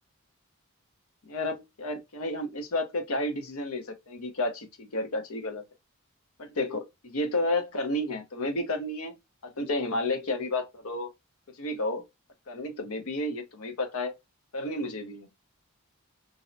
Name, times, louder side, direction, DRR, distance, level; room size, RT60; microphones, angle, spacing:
voice 1, 1.2-5.6 6.4-9.1 9.4-11.1 11.6-12.0 12.5-14.1 14.5-15.3, left 1 dB, 80° left, 0.7 m, -31 dB
2.7 x 2.0 x 2.4 m
head